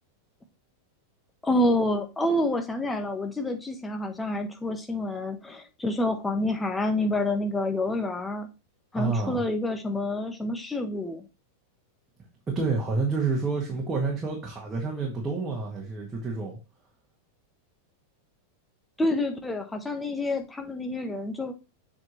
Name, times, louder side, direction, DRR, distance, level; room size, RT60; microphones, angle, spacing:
voice 1, 1.4-8.5 8.9-11.3 19.0-21.5, left 1 dB, 10° left, 1.2 m, -28 dB
voice 2, 8.9-9.4 12.5-16.6, right 4 dB, 15° right, 1.7 m, -29 dB
7.7 x 4.4 x 3.0 m
figure-of-eight pair, 90°, 0 cm